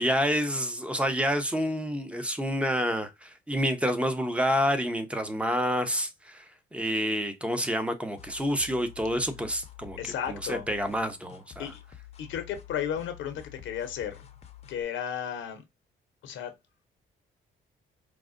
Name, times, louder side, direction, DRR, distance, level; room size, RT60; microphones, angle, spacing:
voice 1, 0.0-6.4 6.7-10.0 10.5-11.7, equal, 5° right, 0.7 m, -28 dB
sound 1, 8.2-14.8, left 11 dB, 30° left, 0.6 m, -49 dB
voice 2, 10.0-10.7 11.6-11.8 12.2-14.2 14.7-15.6 16.2-16.5, left 9 dB, 75° left, 0.7 m, -33 dB
4.7 x 2.1 x 2.5 m
cardioid pair, 90°, 20 cm